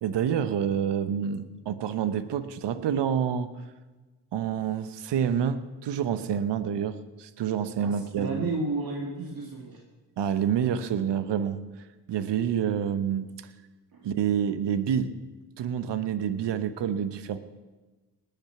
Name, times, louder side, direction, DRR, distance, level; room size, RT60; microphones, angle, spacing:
voice 1, 0.0-3.5 4.3-8.5 10.2-11.6 12.1-13.3 14.0-15.1 15.6-17.4, right 8 dB, 75° right, 13 dB, 1.0 m, -28 dB
voice 2, 7.8-9.8 13.9-14.1, right 2 dB, 55° right, 1 dB, 2.0 m, -32 dB
19.5 x 7.0 x 5.9 m, 1.2 s
supercardioid pair, 40°, 43 cm